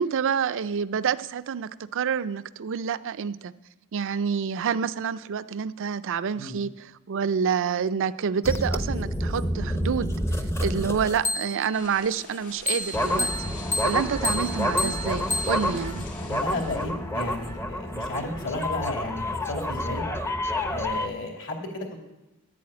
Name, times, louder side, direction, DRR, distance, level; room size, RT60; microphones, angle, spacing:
voice 1, 0.0-3.5 3.9-6.7 7.1-10.2 10.6-13.3 13.8-16.1, right 6 dB, 60° right, 15 dB, 0.4 m, -28 dB
sound 1, 8.4-11.8 12.7-21.1, left 1 dB, 10° left, 0.7 m, -28 dB
sound 2, 11.7-16.9, left 4 dB, 75° left, 2.1 m, -45 dB
voice 2, 16.2-20.1 20.7-22.0, left 2 dB, 60° left, 1 dB, 2.7 m, -33 dB
11.0 x 8.4 x 8.7 m, 0.99 s
head